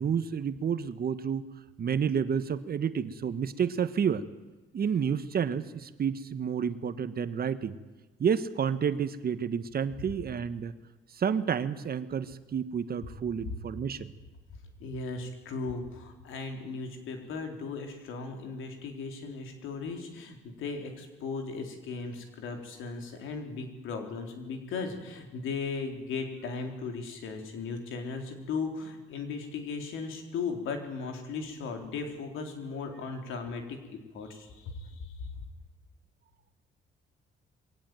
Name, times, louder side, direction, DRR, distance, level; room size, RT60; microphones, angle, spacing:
voice 1, 0.0-1.5 1.8-4.2 4.7-7.8 8.2-10.7 11.1-14.1, right 7 dB, 50° right, 12 dB, 1.4 m, -30 dB
voice 2, 14.8-35.3, left 4 dB, 85° left, 5 dB, 3.9 m, -37 dB
22.5 x 17.5 x 9.2 m, 1.2 s
cardioid pair, 90°, 20 cm